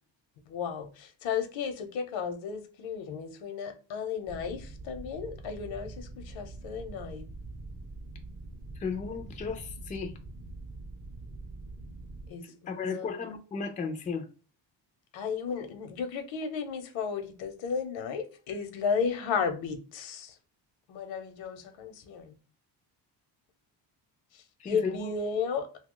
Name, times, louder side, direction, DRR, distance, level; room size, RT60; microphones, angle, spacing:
voice 1, 0.5-7.3 12.3-13.1 15.1-20.3 20.9-22.3 24.3-25.7, left 6 dB, 80° left, 0.9 m, -34 dB
sound 1, 4.3-12.3, right 2 dB, 35° right, 0.8 m, -44 dB
voice 2, 8.8-10.1 12.7-14.3 24.6-25.1, left 5 dB, 20° left, 0.4 m, -34 dB
2.7 x 2.3 x 3.7 m
cardioid pair, 150°, 45 cm